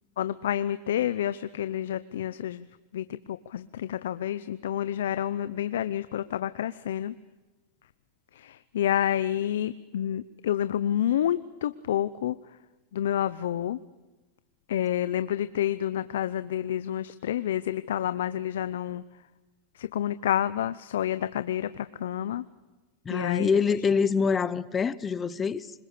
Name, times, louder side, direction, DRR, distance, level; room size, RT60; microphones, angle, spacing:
voice 1, 0.2-2.7 2.9-7.1 8.3-12.4 12.9-13.8 14.7-19.0 19.7-22.4 23.1-23.5, left 11 dB, 85° left, 0.7 m, -29 dB
voice 2, 23.0-25.7, left 6 dB, 20° left, 1.0 m, -25 dB
26.0 x 22.0 x 6.8 m
supercardioid pair, 125°, 0 cm